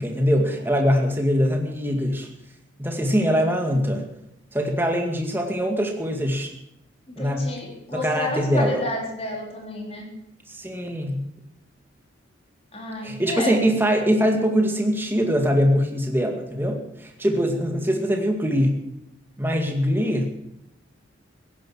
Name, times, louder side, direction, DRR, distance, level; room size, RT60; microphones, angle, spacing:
voice 1, 0.0-2.3 2.8-4.1 4.5-6.5 7.2-7.5 7.9-8.8 10.5-11.2 13.0-18.8 19.4-20.3, equal, 10° right, 3 dB, 2.1 m, -22 dB
voice 2, 7.1-10.1 12.7-13.6, left 1 dB, 30° left, 0 dB, 3.8 m, -30 dB
16.0 x 10.5 x 7.4 m, 0.84 s
head